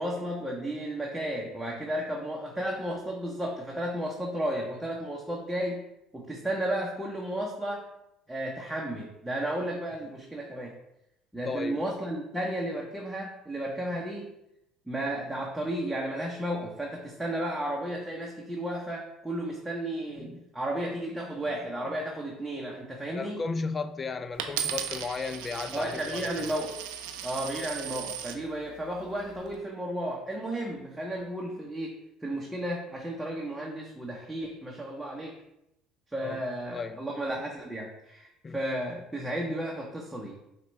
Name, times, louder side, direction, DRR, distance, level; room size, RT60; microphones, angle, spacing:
voice 1, 0.0-5.8 6.1-7.8 8.3-10.7 11.3-14.3 14.9-23.4 25.7-26.8 27.2-31.9 32.2-35.4 36.1-40.4, right 1 dB, 5° right, -2 dB, 0.8 m, -33 dB
voice 2, 11.5-11.8 23.1-26.5 36.2-36.4 36.7-37.0 38.4-38.6, left 4 dB, 30° left, 10 dB, 0.4 m, -34 dB
Coin (dropping), 24.4-28.4 29.1-29.5, right 9 dB, 80° right, 0.5 m, -36 dB
5.6 x 2.3 x 4.1 m, 0.87 s
supercardioid pair, 80°, 0 cm